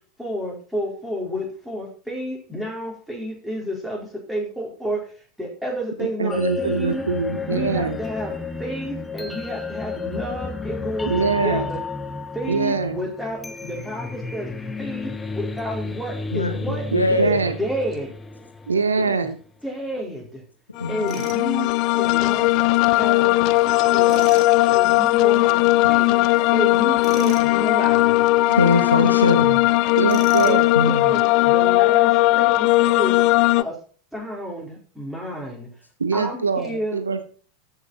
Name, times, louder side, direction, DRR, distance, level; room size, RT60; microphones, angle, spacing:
voice 1, 0.2-5.1 5.4-7.0 7.4-8.3 8.6-11.8 12.3-14.5 14.8-17.3 17.6-18.1 19.0-19.3 19.6-20.4 20.9-21.7 22.0-22.5 22.9-23.3 23.7-24.2 24.7-26.2 26.5-28.2 30.4-30.6 30.9-33.2 33.6-33.8 34.1-35.7 36.1-37.0, equal, ahead, -2 dB, 4.4 m, -31 dB
voice 2, 6.0-8.0 11.1-11.6 12.5-13.0 16.9-17.6 18.7-19.4 30.0-30.7 36.0-37.2, right 5 dB, 75° right, 10 dB, 1.0 m, -23 dB
sound 1, 6.3-19.3, left 4 dB, 15° left, 1.0 m, -32 dB
voice 3, 16.3-17.4 20.8-21.3 28.5-29.6 30.8-31.1, left 3 dB, 85° left, 5 dB, 1.8 m, -22 dB
sound 2, 20.8-33.6, left 19 dB, 45° left, 0.4 m, -18 dB
Tools, 21.1-21.4 24.1-24.5 27.0-27.5 30.1-30.7, right 6 dB, 35° right, 2.0 m, -37 dB
14.0 x 5.9 x 4.2 m, 0.40 s
figure-of-eight pair, 85°, 0 cm